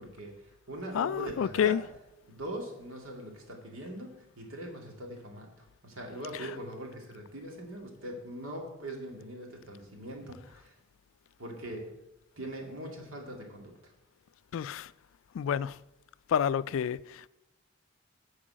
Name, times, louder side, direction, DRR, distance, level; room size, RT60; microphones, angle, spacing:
voice 1, 0.0-1.8 2.3-5.5 5.8-10.7 11.4-11.9 12.4-13.9, right 1 dB, 90° right, 2.3 m, -41 dB
voice 2, 0.9-1.8 14.5-14.9 15.3-15.8 16.3-17.3, left 8 dB, 75° left, 0.3 m, -29 dB
10.0 x 4.8 x 7.6 m
head